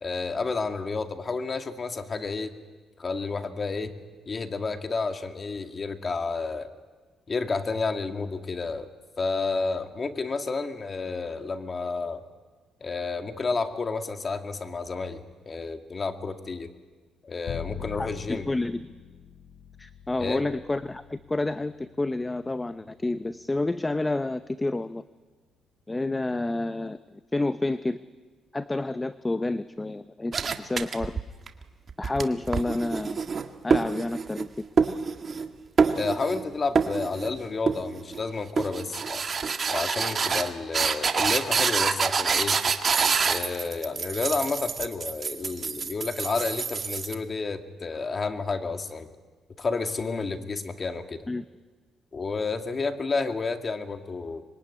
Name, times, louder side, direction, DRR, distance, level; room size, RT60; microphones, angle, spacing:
voice 1, 0.0-2.5 3.0-3.9 4.3-6.7 7.3-8.9 9.2-12.2 12.8-16.7 17.2-18.5 20.2-20.4 35.9-39.2 39.7-42.6 43.3-49.1 49.6-51.3 52.1-54.4, left 4 dB, 35° left, 7 dB, 2.2 m, -30 dB
Bowed string instrument, 17.5-23.6, left 8 dB, 60° left, 1.3 m, -43 dB
voice 2, 18.0-18.9 19.8-25.0 25.9-27.0 27.3-28.0 28.5-31.2 32.0-33.2 33.6-34.5 51.3-51.4, left 2 dB, 15° left, 12 dB, 0.8 m, -29 dB
sound 1, 30.3-31.5 31.9-34.5 34.8-35.5 35.8-36.4 36.7-37.3 37.7-38.2 38.6-47.1, right 5 dB, 45° right, 1.8 m, -26 dB
25.5 x 22.0 x 9.9 m, 1.4 s
cardioid pair, 90°, 0 cm